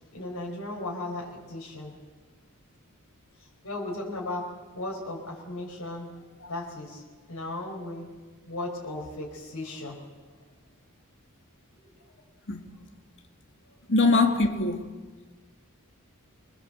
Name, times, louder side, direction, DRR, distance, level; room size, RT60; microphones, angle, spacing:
voice 1, 0.1-1.9 3.6-6.2 6.5-7.0 7.3-8.1 8.5-10.0 11.8-11.9, left 2 dB, 75° left, 4.9 m, -36 dB
voice 2, 13.9-14.9, left 3 dB, 55° left, 2.1 m, -22 dB
25.5 x 22.5 x 7.8 m
head